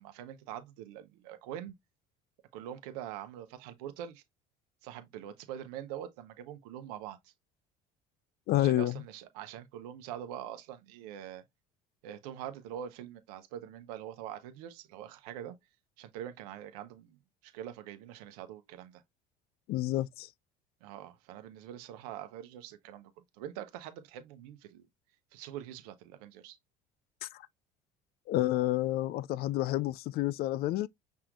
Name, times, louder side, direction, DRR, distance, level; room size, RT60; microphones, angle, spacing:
voice 1, 0.0-1.7 2.5-4.2 4.8-7.2 8.6-11.4 12.0-15.6 16.0-17.2 17.4-19.0 20.8-23.1 23.4-24.9 25.3-26.6, right 10 dB, 75° right, 0.9 m, -44 dB
voice 2, 8.5-9.0 19.7-20.3 27.2-27.4 28.3-30.9, left 14 dB, 55° left, 0.4 m, -29 dB
5.8 x 3.6 x 2.4 m
hypercardioid pair, 70°, 20 cm